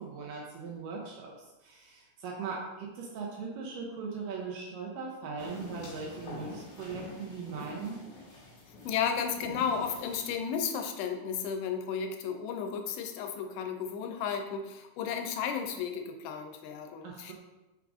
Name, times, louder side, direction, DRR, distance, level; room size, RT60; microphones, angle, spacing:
voice 1, 0.0-1.3 1.6-8.0 17.0-17.3, right 5 dB, 80° right, -2 dB, 2.1 m, -39 dB
sound 1, 5.4-10.4, left 2 dB, 65° left, 2.6 m, -46 dB
voice 2, 8.8-17.3, left 7 dB, 90° left, 5 dB, 2.5 m, -33 dB
6.0 x 2.4 x 3.6 m, 1.0 s
omnidirectional pair, 4.3 m